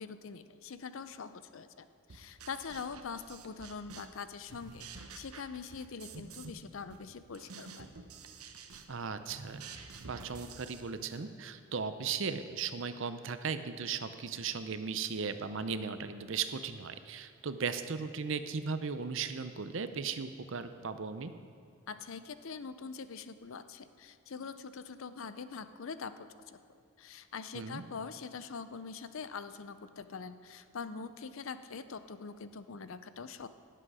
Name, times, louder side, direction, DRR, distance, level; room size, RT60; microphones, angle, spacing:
voice 1, 0.0-7.9 21.9-26.6 27.0-33.5, left 5 dB, 65° left, 12 dB, 0.5 m, -44 dB
sound 1, 2.1-4.2 4.5-6.6 6.9-11.2, right 5 dB, 85° right, 1.0 m, -49 dB
voice 2, 8.9-9.6 10.0-21.3 27.5-27.8, right 5 dB, 60° right, 10 dB, 0.6 m, -37 dB
17.0 x 7.8 x 4.9 m, 2.5 s
head